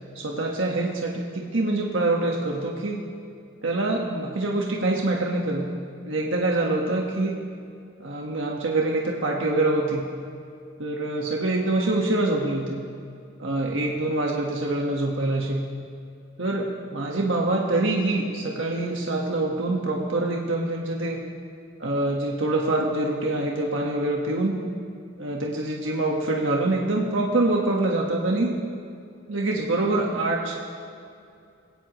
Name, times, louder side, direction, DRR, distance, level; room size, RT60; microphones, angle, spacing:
voice 1, 0.1-3.0 3.6-5.7 6.0-7.4 8.0-10.0 10.8-12.8 13.4-15.6 16.4-21.2 21.8-24.6 25.2-28.5 29.3-30.6, right 2 dB, 80° right, -1 dB, 1.5 m, -25 dB
21.0 x 17.0 x 3.1 m, 2.4 s
head